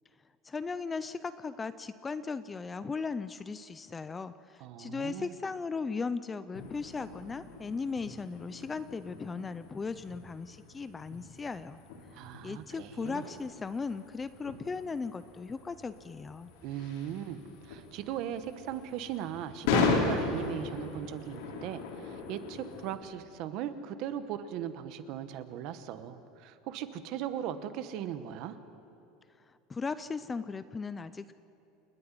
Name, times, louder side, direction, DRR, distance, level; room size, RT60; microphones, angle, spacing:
voice 1, 0.4-11.8 12.4-16.5 29.7-31.3, left 4 dB, 10° left, 13 dB, 0.4 m, -37 dB
voice 2, 4.6-5.4 12.1-13.2 16.6-28.6, right 10 dB, 45° right, 11 dB, 1.1 m, -38 dB
sound 1, 6.5-23.0, left 4 dB, 75° left, 3.4 m, -37 dB
29.0 x 9.8 x 10.0 m, 2.8 s
cardioid pair, 175°, 0 cm